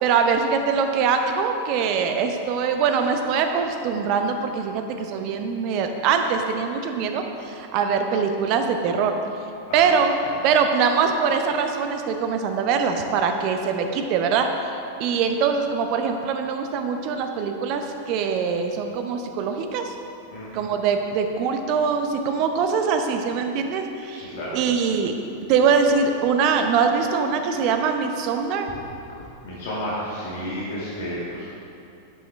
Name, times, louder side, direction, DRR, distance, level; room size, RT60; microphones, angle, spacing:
voice 1, 0.0-9.1 9.7-10.1 10.4-19.9 20.5-24.3 24.5-25.1 25.5-28.7, right 6 dB, 40° right, 5 dB, 0.8 m, -23 dB
voice 2, 9.7-10.0 20.3-20.6 24.1-24.5 29.4-31.6, equal, 55° left, -8 dB, 2.1 m, -32 dB
10.0 x 8.0 x 3.4 m, 2.7 s
figure-of-eight pair, 90°, 0 cm